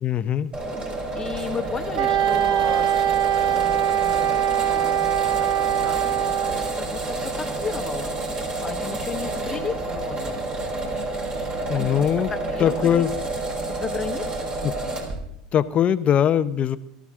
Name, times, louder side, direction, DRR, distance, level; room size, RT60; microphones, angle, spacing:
voice 1, 0.0-0.5 11.7-12.3 12.6-13.1 15.5-16.8, left 10 dB, 35° left, 12 dB, 0.9 m, -21 dB
sound 1, 0.5-15.2, right 2 dB, 30° right, 5.5 m, -29 dB
voice 2, 1.1-3.0 3.5-8.1 8.6-10.6 11.7-13.0 13.7-14.5, left 5 dB, 20° left, 5 dB, 1.5 m, -35 dB
Wind instrument woodwind instrument, 2.0-6.8, right 11 dB, 65° right, 0.9 m, -22 dB
22.5 x 13.5 x 3.8 m, 0.73 s
supercardioid pair, 110°, 4 cm